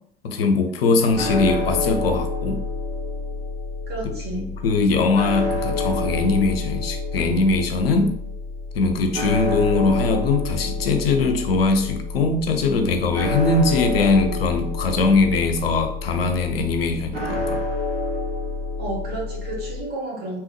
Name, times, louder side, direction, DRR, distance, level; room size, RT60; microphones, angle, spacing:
voice 1, 0.2-2.7 4.0-8.1 8.7-17.6, left 3 dB, 75° left, 6 dB, 0.5 m, -21 dB
sound 1, 1.1-19.8, left 2 dB, 75° right, 1.0 m, -28 dB
voice 2, 3.9-4.5 18.8-20.4, right 2 dB, 30° right, -2 dB, 1.4 m, -31 dB
3.4 x 3.1 x 3.1 m, 0.66 s
figure-of-eight pair, 70°, 30 cm